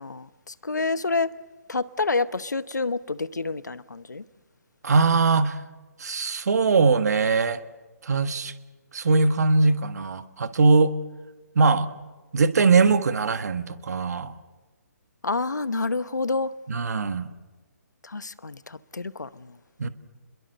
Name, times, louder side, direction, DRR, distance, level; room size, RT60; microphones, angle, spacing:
voice 1, 0.0-1.3 1.7-4.2 15.2-16.5 18.0-19.6, left 3 dB, 90° left, 1.0 m, -28 dB
voice 2, 4.8-5.6 6.0-7.6 8.0-8.5 8.9-10.9 11.5-11.9 12.3-14.3 16.7-17.3 19.8-19.9, right 4 dB, 65° right, 1.6 m, -21 dB
29.0 x 22.0 x 6.6 m
figure-of-eight pair, 140°, 9 cm